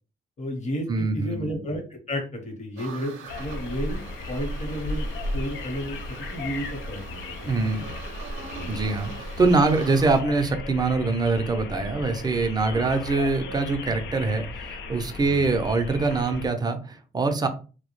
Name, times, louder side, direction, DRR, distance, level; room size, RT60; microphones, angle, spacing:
voice 1, 0.4-7.8 8.5-8.8 12.6-12.8 15.3-15.5, equal, 35° left, 3 dB, 0.9 m, -33 dB
voice 2, 0.9-1.6 7.4-7.9 8.7-17.5, right 3 dB, 20° right, 5 dB, 0.5 m, -24 dB
sound 1, 2.8-10.2, right 6 dB, 80° right, 0.5 m, -43 dB
sound 2, 3.3-16.5, left 2 dB, 70° left, 0.4 m, -35 dB
2.2 x 2.1 x 3.0 m, 0.35 s
cardioid pair, 90°, 20 cm